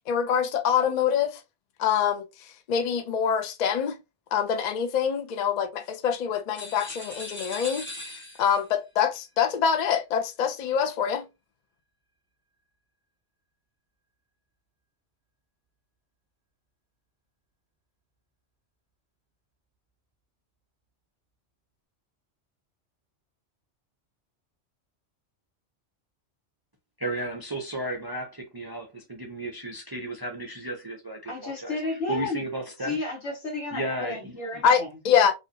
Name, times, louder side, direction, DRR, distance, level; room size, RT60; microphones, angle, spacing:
voice 1, 0.1-1.4 1.8-4.0 4.3-7.9 8.4-11.3 34.6-35.3, left 7 dB, 55° left, 0.5 m, -25 dB
sound 1, 6.5-8.7, left 1 dB, 10° left, 0.8 m, -39 dB
voice 2, 27.0-31.8 32.1-33.0 33.7-34.6, right 1 dB, 35° right, 0.3 m, -34 dB
voice 3, 31.2-32.4 32.8-34.9, left 3 dB, 85° left, 1.5 m, -32 dB
3.1 x 2.5 x 2.6 m
omnidirectional pair, 1.2 m